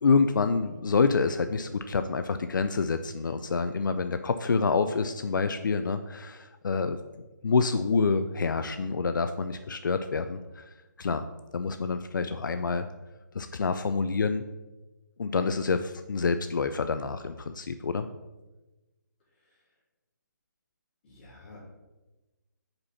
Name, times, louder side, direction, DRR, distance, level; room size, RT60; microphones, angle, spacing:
voice 1, 0.0-7.0 7.4-10.7 11.0-11.2 11.5-12.9 13.3-14.4 15.2-18.1, left 4 dB, 85° left, 9 dB, 0.4 m, -27 dB
voice 2, 21.0-21.6, left 3 dB, 30° left, -5 dB, 2.4 m, -51 dB
5.2 x 4.3 x 5.6 m, 1.1 s
hypercardioid pair, 160°, 10 cm